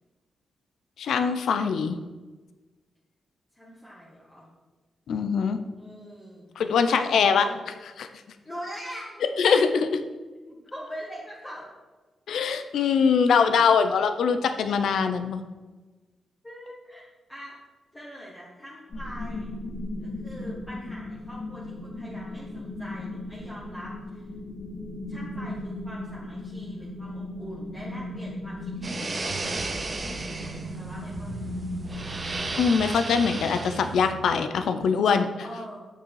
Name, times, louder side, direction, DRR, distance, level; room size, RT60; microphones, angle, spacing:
voice 1, 1.0-2.0 5.1-5.6 6.6-7.5 8.0-8.1 9.4-10.0 12.3-15.4 32.6-35.3, left 6 dB, 80° left, 9 dB, 0.7 m, -22 dB
voice 2, 3.5-4.5 5.7-6.4 6.8-7.7 8.4-9.2 10.4-11.7 16.4-17.5 17.9-19.5 20.0-24.2 25.1-32.4 35.4-35.9, equal, 10° left, -6 dB, 1.6 m, -43 dB
sound 1, 18.9-32.6, left 1 dB, 55° left, 2.4 m, -37 dB
sound 2, 28.8-34.1, right 3 dB, 25° right, 0.7 m, -34 dB
sound 3, 29.2-34.4, right 6 dB, 70° right, 0.7 m, -41 dB
8.8 x 6.9 x 4.8 m, 1.3 s
wide cardioid pair, 150°, 0 cm